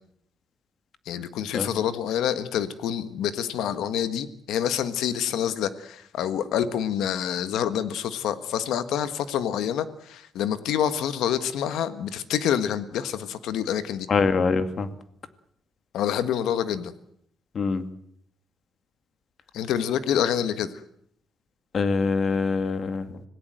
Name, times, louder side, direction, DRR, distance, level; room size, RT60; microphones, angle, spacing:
voice 1, 1.0-14.1 15.9-16.9 19.5-20.7, left 9 dB, 85° left, 12 dB, 1.5 m, -27 dB
voice 2, 14.1-14.9 17.5-17.9 21.7-23.2, left 4 dB, 50° left, 10 dB, 2.2 m, -24 dB
26.0 x 17.0 x 7.8 m, 0.71 s
cardioid pair, 90°, 0 cm